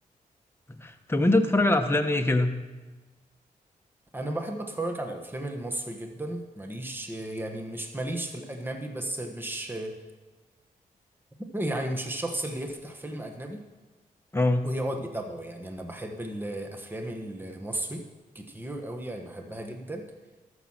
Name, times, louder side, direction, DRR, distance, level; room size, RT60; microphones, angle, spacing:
voice 1, 0.8-2.5 14.3-14.7, left 2 dB, 15° left, 5 dB, 1.2 m, -23 dB
voice 2, 4.1-10.0 11.5-13.6 14.6-18.0 18.3-20.0, right 1 dB, 15° right, 3 dB, 1.3 m, -34 dB
13.5 x 6.5 x 6.0 m, 1.2 s
cardioid pair, 65°, 15 cm